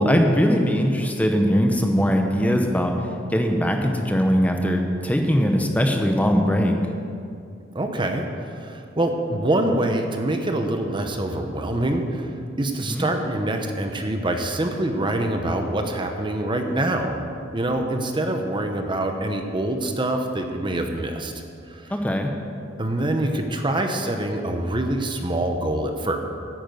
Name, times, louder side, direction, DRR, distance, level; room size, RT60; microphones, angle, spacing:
voice 1, 0.0-2.9 3.3-6.7 12.9-13.0 21.9-22.3, equal, 10° left, 3 dB, 0.9 m, -20 dB
voice 2, 7.7-12.3 12.6-17.2 17.5-21.9 22.8-26.2, right 1 dB, 25° right, 4 dB, 0.9 m, -25 dB
10.5 x 8.8 x 7.9 m, 2.4 s
head